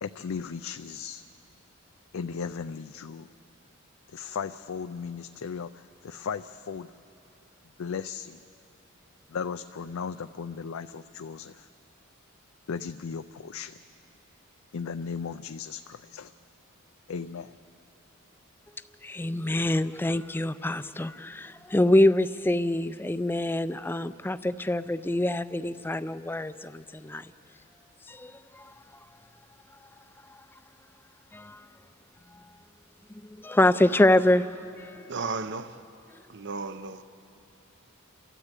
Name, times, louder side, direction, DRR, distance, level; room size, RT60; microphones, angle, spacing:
voice 1, 0.0-1.3 2.1-3.3 4.1-6.9 7.8-8.4 9.3-11.7 12.7-13.8 14.7-16.3 17.1-17.6, left 6 dB, 80° left, 0.4 m, -36 dB
voice 2, 19.0-27.3 28.1-28.7 30.3-30.4 31.3-31.7 32.3-32.5 33.2-35.0 36.1-36.2, left 1 dB, 10° left, 0.4 m, -25 dB
voice 3, 35.1-35.8 36.3-37.0, right 4 dB, 55° right, 0.7 m, -34 dB
29.0 x 13.0 x 8.3 m
head